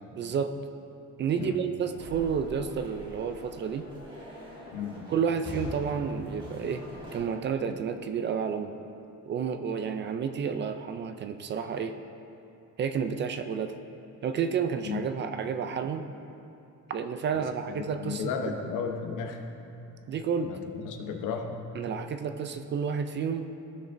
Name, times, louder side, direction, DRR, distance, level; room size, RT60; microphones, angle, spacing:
voice 1, 0.1-0.5 1.2-3.9 5.1-6.8 7.1-8.8 9.3-11.9 12.8-13.7 14.2-16.0 16.9-18.5 20.1-20.5 21.7-23.5, right 6 dB, 35° right, 8 dB, 0.4 m, -30 dB
sound 1, 2.0-7.2, equal, 15° right, 1.9 m, -43 dB
voice 2, 4.7-5.1 14.8-15.1 17.3-19.4 20.4-21.6, left 6 dB, 75° left, 4 dB, 0.9 m, -34 dB
16.0 x 6.3 x 2.6 m, 2.8 s
cardioid pair, 160°, 31 cm